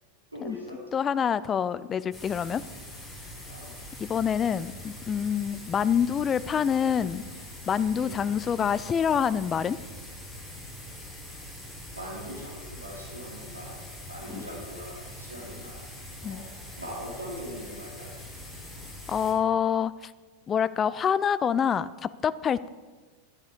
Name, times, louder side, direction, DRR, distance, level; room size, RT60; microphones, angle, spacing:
voice 1, 0.3-0.8 3.4-3.7 7.9-8.2 11.9-15.9 16.2-16.5 16.8-18.1, equal, 80° right, -4 dB, 2.7 m, -41 dB
voice 2, 0.9-2.6 4.0-7.2 7.7-9.8 14.3-14.4 16.2-16.4 19.1-20.1 20.5-22.7, left 8 dB, 25° left, 17 dB, 0.4 m, -26 dB
sound 1, 2.1-19.3, left 1 dB, ahead, 4.4 m, -43 dB
10.5 x 10.0 x 4.8 m, 1.3 s
figure-of-eight pair, 90°, 0 cm